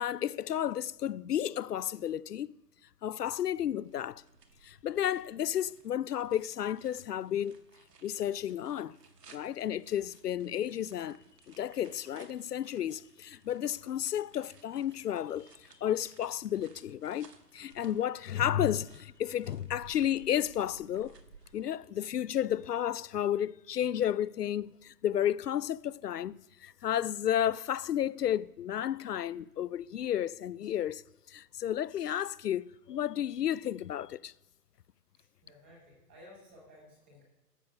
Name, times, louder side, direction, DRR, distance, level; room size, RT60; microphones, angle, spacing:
voice 1, 0.0-2.5 3.0-4.2 4.6-7.6 8.0-9.0 9.3-11.2 11.5-21.1 21.5-26.3 26.6-31.0 31.3-34.3, left 10 dB, 75° left, 0.5 m, -32 dB
sound 1, 3.8-21.6, right 5 dB, 75° right, 1.8 m, -59 dB
voice 2, 35.2-37.2, left 1 dB, 5° right, 1.0 m, -56 dB
12.5 x 7.0 x 5.4 m
hypercardioid pair, 165°, 48 cm